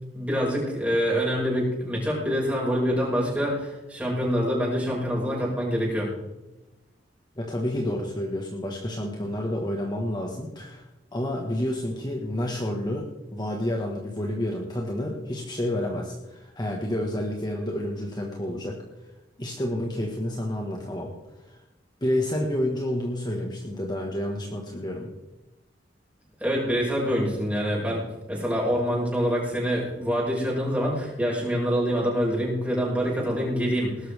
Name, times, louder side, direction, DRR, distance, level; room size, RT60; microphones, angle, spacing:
voice 1, 0.1-6.1 26.4-34.1, equal, 10° right, -4 dB, 5.9 m, -26 dB
voice 2, 7.3-10.8 11.1-18.8 19.4-21.6 22.0-25.1, left 1 dB, 25° left, 0 dB, 1.6 m, -29 dB
20.0 x 12.0 x 3.6 m, 1.0 s
head